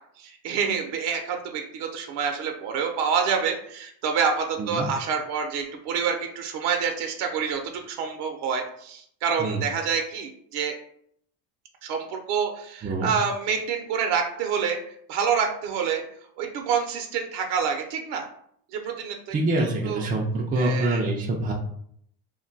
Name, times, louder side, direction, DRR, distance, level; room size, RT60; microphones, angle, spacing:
voice 1, 0.2-10.7 11.8-16.0 16.4-18.3 18.7-19.3 19.6-20.0 20.6-21.0, right 6 dB, 65° right, 3 dB, 0.6 m, -27 dB
voice 2, 12.8-13.1 19.3-21.5, right 2 dB, 20° right, -2 dB, 0.3 m, -25 dB
2.2 x 2.2 x 3.8 m, 0.66 s
cardioid pair, 120°, 44 cm